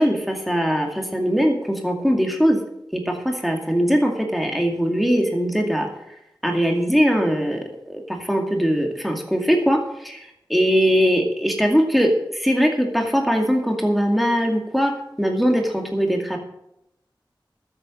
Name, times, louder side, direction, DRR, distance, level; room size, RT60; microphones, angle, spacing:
voice 1, 0.0-2.6 2.9-5.9 6.4-14.9 15.2-16.4, equal, ahead, 2 dB, 2.2 m, -21 dB
13.0 x 8.0 x 6.3 m, 0.82 s
wide cardioid pair, 55°, 8 cm